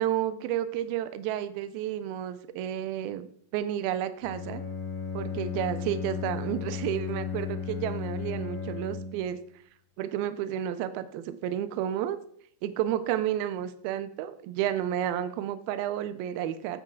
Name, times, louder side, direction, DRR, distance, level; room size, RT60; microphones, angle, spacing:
voice 1, 0.0-3.3 3.5-4.6 5.1-9.4 10.0-12.2 12.6-16.8, right 11 dB, 80° right, 13 dB, 2.3 m, -31 dB
Bowed string instrument, 4.2-9.3, left 6 dB, 50° left, 3.8 m, -35 dB
9.0 x 8.9 x 3.8 m, 0.62 s
omnidirectional pair, 4.9 m